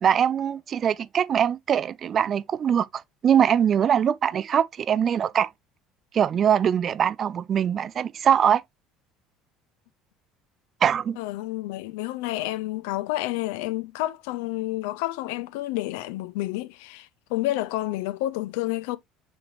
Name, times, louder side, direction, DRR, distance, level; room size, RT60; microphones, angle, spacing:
voice 1, 0.0-5.5 6.1-8.6 10.8-11.2, right 8 dB, 45° right, 0.3 m, -22 dB
voice 2, 11.2-19.0, left 16 dB, 75° left, 0.3 m, -29 dB
6.9 x 3.2 x 2.3 m
hypercardioid pair, 75°, 0 cm